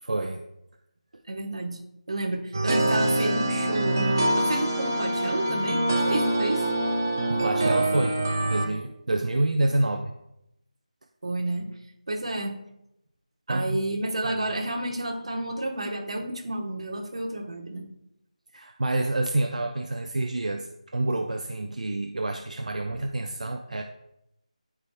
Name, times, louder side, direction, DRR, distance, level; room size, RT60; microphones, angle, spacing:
voice 1, 0.0-0.4 7.3-8.2 8.4-10.1 13.5-13.8 14.2-14.3 18.5-23.8, right 2 dB, 70° right, 4 dB, 0.6 m, -28 dB
voice 2, 1.3-1.8 2.1-6.6 11.2-11.7 12.1-12.6 13.5-17.8, right 1 dB, 50° right, 2 dB, 1.1 m, -30 dB
sound 1, 2.5-8.7, right 2 dB, 25° right, 0.5 m, -25 dB
Wind instrument woodwind instrument, 2.8-7.2, left 3 dB, 50° left, 2.4 m, -34 dB
11.0 x 4.8 x 2.2 m, 0.84 s
figure-of-eight pair, 180°, 4 cm